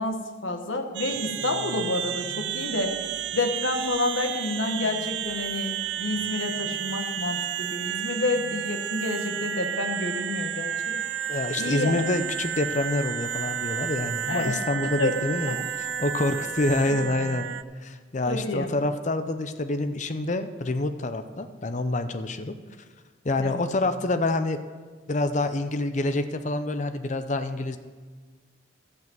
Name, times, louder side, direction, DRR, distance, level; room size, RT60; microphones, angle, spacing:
voice 1, 0.0-3.0 3.3-11.0 11.6-11.9 14.3-14.6 15.0-15.1 15.5-15.6 18.2-18.7 23.4-23.6, left 2 dB, 70° left, 4 dB, 1.4 m, -29 dB
sound 1, 0.9-17.6, right 9 dB, 60° right, 0.4 m, -32 dB
voice 2, 11.3-17.5 17.8-22.6 23.2-24.6 25.1-27.8, left 2 dB, 35° left, 9 dB, 0.6 m, -27 dB
13.0 x 5.9 x 7.6 m, 1.5 s
head